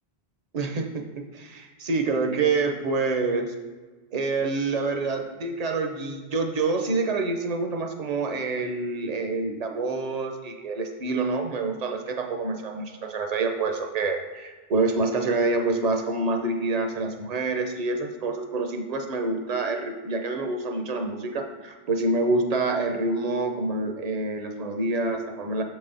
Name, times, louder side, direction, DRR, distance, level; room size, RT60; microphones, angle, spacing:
voice 1, 0.5-3.5 4.1-25.6, right 3 dB, 50° right, 4 dB, 0.6 m, -27 dB
6.4 x 4.0 x 3.8 m, 1.3 s
omnidirectional pair, 1.1 m